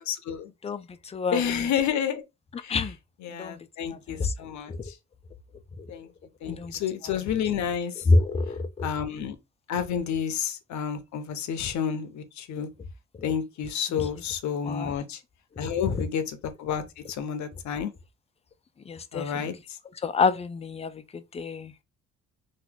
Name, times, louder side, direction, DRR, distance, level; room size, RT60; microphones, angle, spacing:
voice 1, 0.1-0.5 1.3-2.2 2.6-2.8 3.2-4.7 5.9-6.1 6.4-8.0 8.8-9.4 9.7-12.7 13.2-15.2 15.6-16.8 17.1-17.9 19.1-19.8, left 8 dB, 70° left, 0.7 m, -30 dB
voice 2, 8.1-8.9 14.7-14.9 15.9-16.0 18.9-19.5 20.0-21.0 21.3-21.7, left 3 dB, 20° left, 0.4 m, -26 dB
2.9 x 2.4 x 3.9 m
cardioid pair, 90°, 30 cm